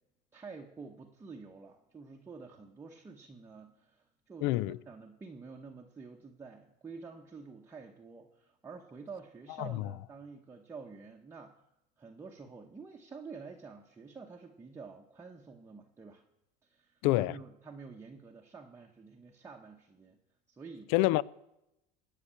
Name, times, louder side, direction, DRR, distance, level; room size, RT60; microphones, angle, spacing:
voice 1, 0.3-11.6 12.0-16.2 16.6-20.2 20.5-20.9, right 4 dB, 10° right, 0.9 m, -49 dB
voice 2, 4.4-4.8 9.6-9.9 17.0-17.3 20.9-21.2, left 18 dB, 65° left, 0.5 m, -27 dB
18.5 x 6.7 x 8.7 m
cardioid pair, 155°, 21 cm